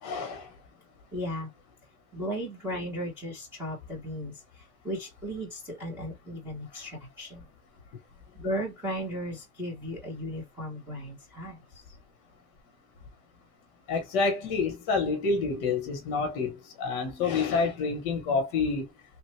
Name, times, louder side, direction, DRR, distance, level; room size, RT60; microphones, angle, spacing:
voice 1, 0.0-0.5 13.9-18.9, left 4 dB, 35° left, 1.1 m, -28 dB
voice 2, 1.1-1.5 2.1-4.3 4.8-7.4 8.3-11.6, equal, 5° right, 1.0 m, -35 dB
3.2 x 2.4 x 3.1 m
supercardioid pair, 170°, 42 cm